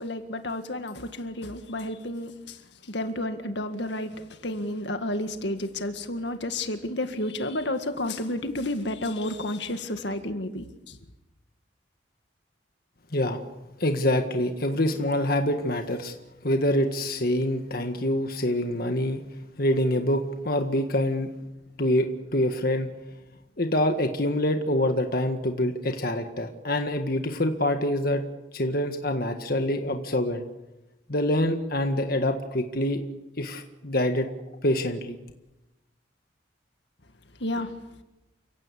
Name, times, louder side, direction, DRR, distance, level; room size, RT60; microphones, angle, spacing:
voice 1, 0.0-11.0 37.4-37.7, left 1 dB, 65° left, 8 dB, 1.9 m, -31 dB
voice 2, 13.1-13.4 13.8-16.1 16.4-19.2 19.6-21.3 21.8-22.9 23.6-28.2 28.5-30.4 31.1-33.0 33.4-34.3 34.6-35.2, left 1 dB, 50° left, 5 dB, 1.7 m, -25 dB
29.5 x 17.0 x 8.5 m, 0.99 s
head